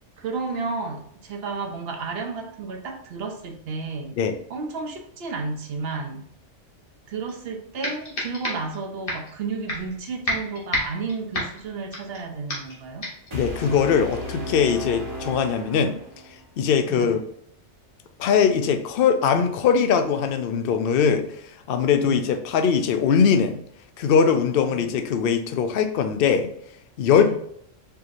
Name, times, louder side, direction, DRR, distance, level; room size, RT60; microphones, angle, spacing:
voice 1, 0.2-4.2 4.5-6.3 7.1-13.1 16.9-17.2 22.0-22.3 24.7-24.8 27.2-27.4, right 4 dB, 60° right, 3 dB, 0.9 m, -32 dB
sound 1, 7.3-7.4 7.8-8.8 9.1-9.3 9.7-10.0 10.3-12.2 12.5-12.8 13.0-13.3, left 1 dB, 45° left, 1.4 m, -29 dB
voice 2, 13.3-16.0 16.6-17.2 18.2-21.3 21.7-23.6 24.0-26.5 27.0-27.4, left 6 dB, 60° left, 7 dB, 0.6 m, -21 dB
sound 2, 13.3-16.4, left 1 dB, 25° right, 0.9 m, -35 dB
4.6 x 3.1 x 2.5 m, 0.69 s
omnidirectional pair, 1.3 m